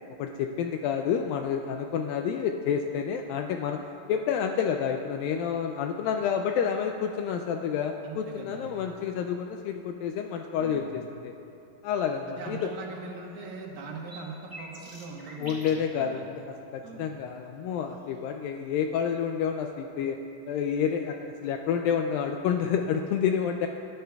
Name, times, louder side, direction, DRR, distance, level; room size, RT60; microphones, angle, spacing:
voice 1, 0.2-3.8 4.1-11.3 11.8-12.6 15.4-16.4 16.7-20.2 20.5-23.7, left 7 dB, 85° left, 4 dB, 2.1 m, -29 dB
voice 2, 8.0-8.7 10.6-10.9 12.3-15.6 15.9-16.2 16.8-17.1, right 3 dB, 70° right, -1 dB, 3.0 m, -41 dB
sound 1, 12.4-12.8 13.2-13.3 13.8-15.9 18.0-18.1, right 1 dB, 15° right, 0.7 m, -46 dB
20.5 x 13.0 x 2.3 m, 2.9 s
omnidirectional pair, 4.4 m